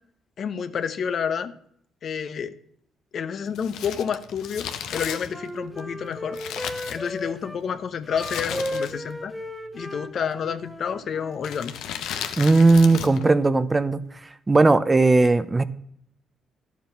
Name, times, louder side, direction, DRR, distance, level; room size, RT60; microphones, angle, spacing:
voice 1, 0.4-1.5 2.0-2.6 3.1-6.4 6.9-9.3 9.7-11.7, left 7 dB, 60° left, 11 dB, 0.9 m, -29 dB
Crumpling crinkling, 3.5-7.5 8.2-9.2 9.4-9.5 10.4-10.7 11.4-13.3 13.6-13.7, left 9 dB, 85° left, 1.0 m, -35 dB
Wind instrument woodwind instrument, 4.6-7.6 8.0-11.4, equal, 5° left, 1.2 m, -35 dB
voice 2, 12.4-14.0 14.5-15.6, right 3 dB, 20° right, 13 dB, 0.7 m, -17 dB
11.5 x 7.3 x 5.7 m, 0.67 s
cardioid pair, 90°, 0 cm